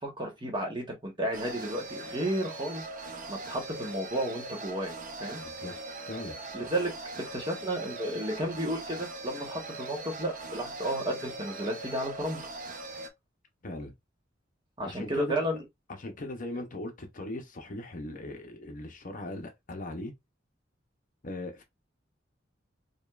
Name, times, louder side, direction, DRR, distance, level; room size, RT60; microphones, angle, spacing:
voice 1, 0.0-4.9 5.2-5.4 6.5-6.9 7.3-12.4 14.8-15.6, right 1 dB, 25° right, 1.3 m, -33 dB
sound 1, 1.3-13.1, right 2 dB, 45° right, 0.8 m, -41 dB
voice 2, 5.4-6.4 13.6-13.9 14.8-15.6 16.0-20.1 21.2-21.6, left 1 dB, 45° left, 0.8 m, -39 dB
5.1 x 2.3 x 2.4 m
head